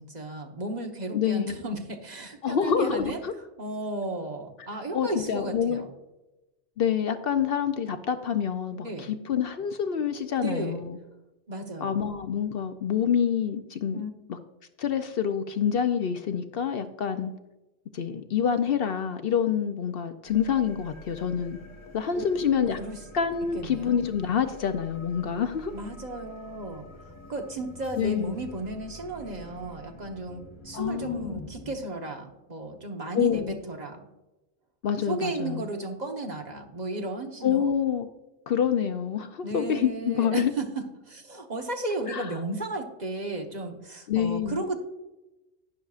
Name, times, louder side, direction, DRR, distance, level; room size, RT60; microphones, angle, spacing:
voice 1, 0.0-3.2 3.6-5.9 8.8-9.1 10.4-10.8 11.5-12.0 13.9-14.1 22.1-22.3 22.8-23.0 23.5-24.0 25.7-26.9 27.3-34.1 35.0-37.7 39.4-44.8, right 2 dB, 40° right, 3 dB, 1.1 m, -34 dB
voice 2, 1.1-1.5 2.4-3.3 4.7-5.8 6.8-11.0 11.8-14.0 14.3-14.4 14.8-17.3 17.9-21.6 21.9-22.8 23.1-25.7 28.0-28.4 30.7-31.4 33.1-33.6 34.8-35.6 37.4-38.1 38.5-40.5 42.1-42.3 44.1-44.6, left 8 dB, 65° left, 9 dB, 0.8 m, -27 dB
sound 1, 20.2-31.7, left 2 dB, 25° left, 1.1 m, -47 dB
11.5 x 9.9 x 2.4 m, 1.0 s
omnidirectional pair, 1.1 m